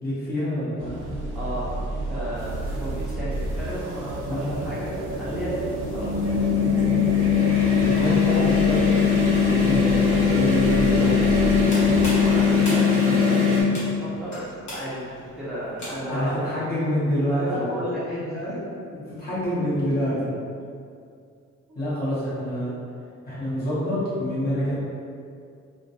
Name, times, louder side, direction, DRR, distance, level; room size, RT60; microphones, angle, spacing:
voice 1, 0.0-1.1 4.3-4.5 7.9-8.9 9.5-11.1 11.4-11.5 16.0-17.8 18.3-18.6 18.9-20.3 21.8-22.7 23.2-24.8, equal, 30° left, -10 dB, 1.0 m, -27 dB
sound 1, 0.8-12.4, right 2 dB, 80° right, 0.5 m, -32 dB
voice 2, 1.3-6.7 12.2-16.6 17.3-18.6 21.7-21.8, equal, ahead, -10 dB, 0.7 m, -33 dB
sound 2, 2.7-2.8 3.9-13.6, left 5 dB, 45° right, 0.7 m, -21 dB
sound 3, 11.7-16.3, left 1 dB, 75° left, 1.0 m, -38 dB
2.2 x 2.1 x 2.7 m, 2.3 s
cardioid pair, 90°, 30 cm